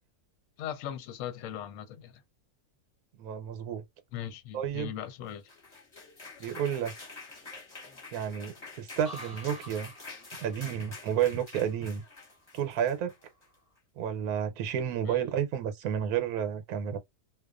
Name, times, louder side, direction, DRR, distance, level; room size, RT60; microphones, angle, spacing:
voice 1, 0.6-2.2 4.1-5.5 15.1-15.3, left 10 dB, 70° left, 0.9 m, -39 dB
voice 2, 3.2-3.8 4.5-4.9 6.4-6.9 8.1-9.9 10.4-12.0 12.5-13.1 14.0-17.0, right 9 dB, 75° right, 1.1 m, -31 dB
sound 1, 5.3-13.5, left 3 dB, 25° left, 0.8 m, -47 dB
sound 2, 9.0-12.9 13.2-13.7, equal, 15° right, 0.9 m, -51 dB
2.4 x 2.3 x 2.3 m
omnidirectional pair, 1.6 m